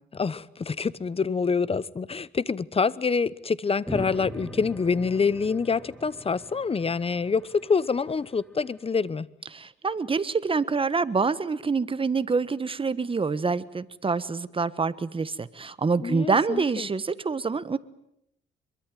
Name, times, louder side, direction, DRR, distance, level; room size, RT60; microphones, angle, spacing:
voice 1, 0.1-9.3 16.0-16.9, left 5 dB, 30° left, 1.0 m, -26 dB
sound 1, 3.9-8.5, equal, ahead, 2.4 m, -41 dB
voice 2, 9.5-17.8, right 4 dB, 25° right, 1.3 m, -26 dB
24.5 x 22.5 x 9.1 m
cardioid pair, 90°, 20 cm